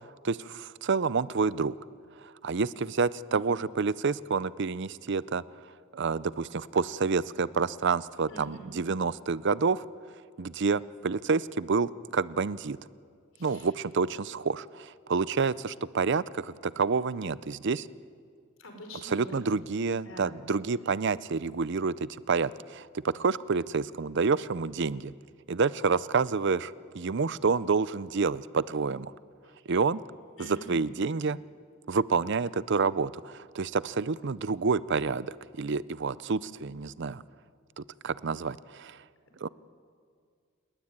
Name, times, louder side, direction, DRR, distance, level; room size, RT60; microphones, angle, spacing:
voice 1, 0.2-1.7 2.2-5.4 5.9-9.9 10.4-12.8 13.4-17.9 19.0-25.1 25.5-29.1 29.7-30.0 30.4-31.4 31.9-37.2 37.8-39.0 39.4-39.5, right 4 dB, 60° right, 18 dB, 0.6 m, -28 dB
voice 2, 3.3-3.6 8.3-8.8 13.4-13.7 18.6-19.4 20.1-20.2 20.7-20.8 30.4-30.9, equal, 75° left, 4 dB, 5.3 m, -46 dB
29.5 x 19.5 x 8.9 m, 2.1 s
head